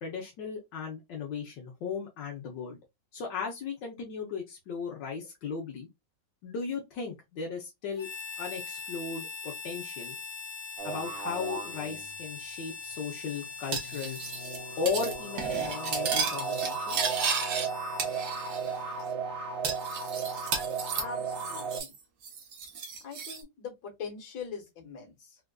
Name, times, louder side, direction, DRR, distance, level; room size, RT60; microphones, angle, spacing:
voice 1, 0.0-2.8 3.1-5.9 6.4-8.1 8.4-10.2 10.8-14.2 14.8-17.0, left 5 dB, 80° left, 1.5 m, -36 dB
Harmonica, 8.0-19.0, left 5 dB, 45° left, 1.4 m, -42 dB
sound 1, 10.8-12.4 13.8-21.8, right 5 dB, 60° right, 1.4 m, -35 dB
Cutlery silverware, 13.7-14.6 14.9-15.1 15.4-17.7 18.0-18.7 19.0-19.1 19.6-22.0 22.2-23.4, right 6 dB, 75° right, 1.6 m, -34 dB
voice 2, 20.9-21.9 23.0-25.4, left 6 dB, 60° left, 1.8 m, -42 dB
4.3 x 2.4 x 2.2 m
omnidirectional pair, 1.9 m